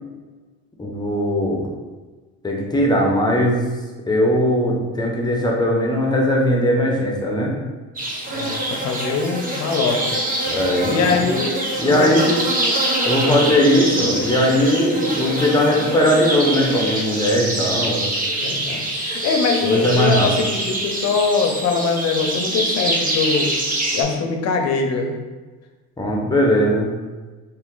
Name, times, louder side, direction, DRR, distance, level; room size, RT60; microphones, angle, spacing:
voice 1, 0.8-1.6 2.4-3.6 4.1-7.5 10.4-11.2 11.8-12.4 13.1-18.0 19.6-20.3 26.0-26.9, equal, 15° left, -2 dB, 0.9 m, -19 dB
sound 1, 8.0-24.0, right 1 dB, 30° right, 0.9 m, -24 dB
voice 2, 8.3-10.2 10.9-11.5 11.8-12.4 13.2-13.5 18.4-23.5 23.9-25.1, left 4 dB, 60° left, 4 dB, 0.7 m, -22 dB
4.0 x 2.8 x 3.8 m, 1.3 s
cardioid pair, 105°, 29 cm